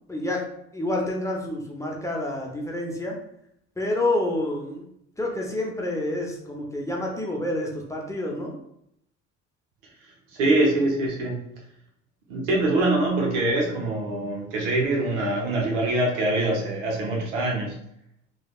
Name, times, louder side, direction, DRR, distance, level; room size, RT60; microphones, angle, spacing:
voice 1, 0.1-0.5 0.7-3.2 3.8-4.9 5.2-8.6, left 1 dB, 10° left, -1 dB, 0.6 m, -28 dB
voice 2, 10.4-11.4 12.3-17.7, right 2 dB, 90° right, -1 dB, 0.8 m, -24 dB
3.2 x 2.2 x 2.3 m, 0.75 s
hypercardioid pair, 70°, 35 cm